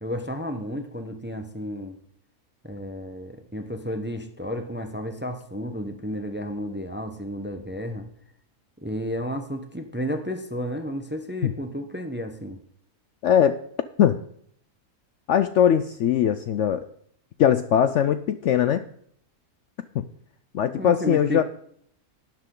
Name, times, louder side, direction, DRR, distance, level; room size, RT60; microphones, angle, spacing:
voice 1, 0.0-2.0 2.6-8.1 8.8-12.6 20.8-21.4, equal, 10° right, 7 dB, 0.7 m, -32 dB
voice 2, 13.2-13.6 14.0-14.2 15.3-16.9 17.4-18.8 19.9-20.0 20.5-21.4, left 9 dB, 65° left, 12 dB, 0.7 m, -20 dB
12.0 x 10.5 x 3.8 m, 0.65 s
omnidirectional pair, 1.6 m